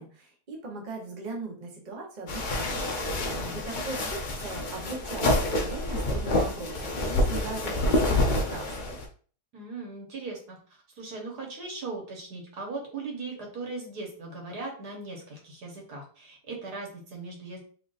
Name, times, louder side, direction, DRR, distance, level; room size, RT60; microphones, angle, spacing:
voice 1, 0.0-2.9 3.5-9.0, right 3 dB, 35° right, -1 dB, 0.9 m, -39 dB
sound 1, 2.3-9.1, left 1 dB, 60° left, 0.5 m, -27 dB
voice 2, 3.3-3.8 9.5-17.6, right 3 dB, 75° right, -1 dB, 1.7 m, -39 dB
3.8 x 3.5 x 2.5 m, 0.42 s
omnidirectional pair, 1.7 m